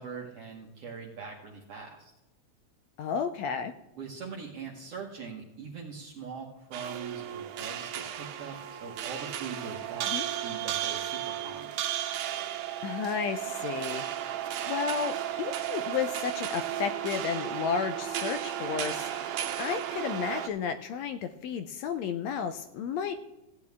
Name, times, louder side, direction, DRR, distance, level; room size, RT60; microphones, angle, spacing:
voice 1, 0.0-2.1 4.0-11.8, right 5 dB, 60° right, -2 dB, 2.1 m, -42 dB
voice 2, 3.0-3.7 10.1-10.3 12.8-14.0 14.7-23.1, left 7 dB, 80° left, 9 dB, 1.7 m, -32 dB
sound 1, 6.7-20.5, right 11 dB, 90° right, 2.4 m, -34 dB
15.5 x 8.6 x 3.5 m, 0.96 s
omnidirectional pair, 3.4 m